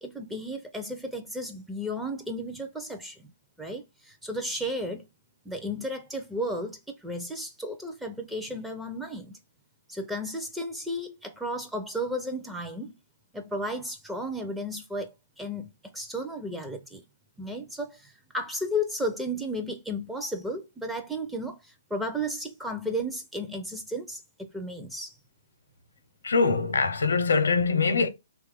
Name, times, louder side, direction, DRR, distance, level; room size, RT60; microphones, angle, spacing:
voice 1, 0.0-3.3 3.6-5.1 5.5-9.4 9.9-12.9 13.3-15.1 15.4-17.0 17.4-25.2, equal, 5° right, 0.4 m, -34 dB
voice 2, 26.2-28.1, left 4 dB, 80° left, 0.6 m, -23 dB
3.0 x 2.3 x 3.3 m
hypercardioid pair, 140°, 0 cm